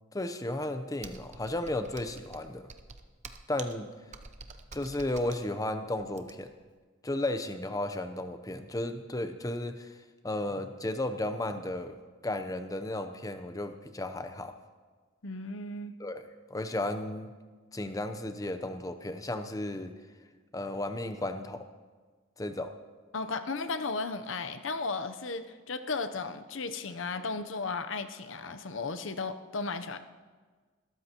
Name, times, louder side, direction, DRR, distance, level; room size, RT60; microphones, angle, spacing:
voice 1, 0.1-2.7 3.5-3.9 4.7-6.5 7.0-10.0 10.2-11.9 12.2-14.5 16.0-16.2 16.5-17.3 17.7-19.9 20.5-21.6 22.4-22.7, left 1 dB, 20° left, 8 dB, 0.7 m, -34 dB
Computer keyboard, 1.0-6.6, right 4 dB, 35° right, 0.8 m, -48 dB
voice 2, 15.2-15.9 23.1-30.0, left 3 dB, 75° left, 9 dB, 0.8 m, -35 dB
20.5 x 13.5 x 3.0 m, 1.4 s
head